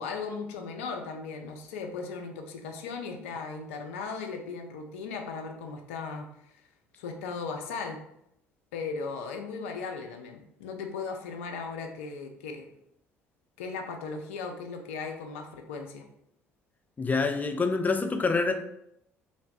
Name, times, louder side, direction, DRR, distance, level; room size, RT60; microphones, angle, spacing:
voice 1, 0.0-6.3 7.0-8.0 8.7-12.7 13.6-16.1, left 4 dB, 75° left, 3 dB, 0.5 m, -37 dB
voice 2, 17.0-18.5, left 4 dB, 20° left, 6 dB, 0.5 m, -26 dB
3.2 x 2.1 x 4.0 m, 0.76 s
figure-of-eight pair, 55°, 7 cm